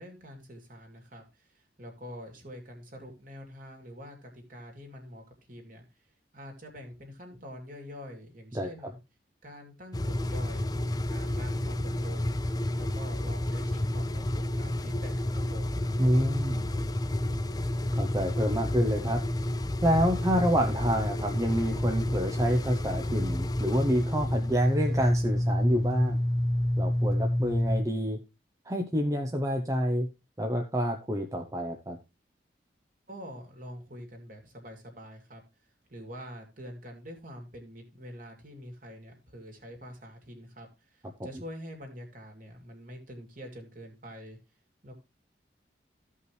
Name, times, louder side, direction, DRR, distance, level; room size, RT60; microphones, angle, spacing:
voice 1, 0.0-5.8 6.3-9.0 9.4-10.7 11.1-12.4 12.8-15.9 33.1-35.4 35.9-44.4 44.8-45.0, equal, 50° right, 3 dB, 2.6 m, -45 dB
sound 1, 9.9-27.8, left 1 dB, 20° left, 0.4 m, -29 dB
voice 2, 16.0-16.7 17.9-19.2 19.8-26.2 26.8-28.2 28.7-30.1 30.4-32.0 41.2-41.3, equal, 20° right, 3 dB, 0.7 m, -27 dB
15.0 x 5.5 x 3.1 m, 0.26 s
head